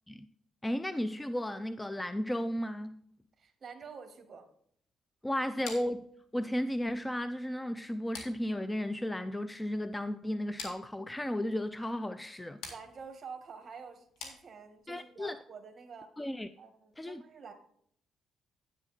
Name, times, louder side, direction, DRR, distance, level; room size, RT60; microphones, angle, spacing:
voice 1, 0.6-3.0 5.2-6.0 6.3-12.6 14.9-15.4 16.2-16.5 17.0-17.2, left 1 dB, 10° left, 0.4 m, -34 dB
voice 2, 3.4-4.5 12.7-16.1 16.6-17.5, right 5 dB, 45° right, 1.6 m, -48 dB
sound 1, 5.6-15.0, left 4 dB, 90° left, 2.0 m, -50 dB
9.4 x 7.0 x 4.2 m
cardioid pair, 90°, 0 cm